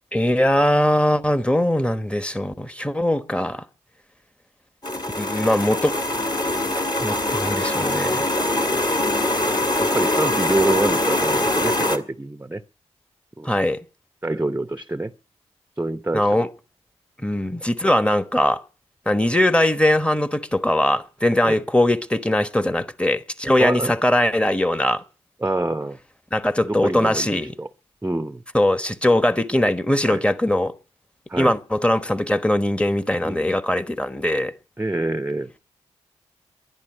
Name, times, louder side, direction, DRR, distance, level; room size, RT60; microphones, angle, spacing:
voice 1, 0.1-3.6 5.2-6.0 7.0-8.3 13.4-13.8 16.1-16.5 17.2-18.6 19.1-25.0 26.3-27.5 28.5-30.7 31.4-34.5, left 1 dB, 10° left, 1.2 m, -21 dB
sound 1, 4.8-12.0, left 1 dB, 35° left, 2.0 m, -23 dB
voice 2, 9.8-12.6 13.4-13.5 14.2-15.1 15.8-16.4 21.4-21.6 23.6-24.0 25.4-26.0 26.6-27.7 28.0-28.4 30.0-30.2 31.3-31.5 33.2-33.5 34.8-35.5, right 2 dB, 15° right, 0.7 m, -26 dB
11.5 x 10.5 x 8.9 m
cardioid pair, 50°, 12 cm